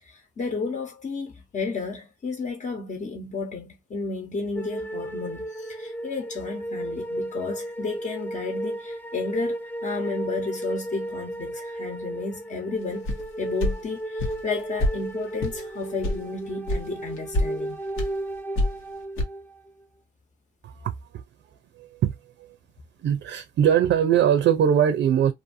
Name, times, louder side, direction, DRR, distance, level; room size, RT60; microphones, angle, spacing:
voice 1, 0.0-13.1 13.4-17.8, left 4 dB, 40° left, 1.0 m, -32 dB
sound 1, 4.6-19.7, right 1 dB, 10° left, 0.6 m, -34 dB
sound 2, 13.1-13.2 13.6-13.8 14.2-14.4 14.8-15.0 15.4-15.6 16.0-16.2 16.7-16.8 17.2-17.5 18.0-18.1 18.6-18.8 19.2-19.3, left 1 dB, 85° left, 1.1 m, -24 dB
voice 2, 20.6-21.2 21.8-22.5 23.0-25.3, right 9 dB, 65° right, 0.6 m, -22 dB
2.6 x 2.6 x 2.6 m
cardioid pair, 90°, 20 cm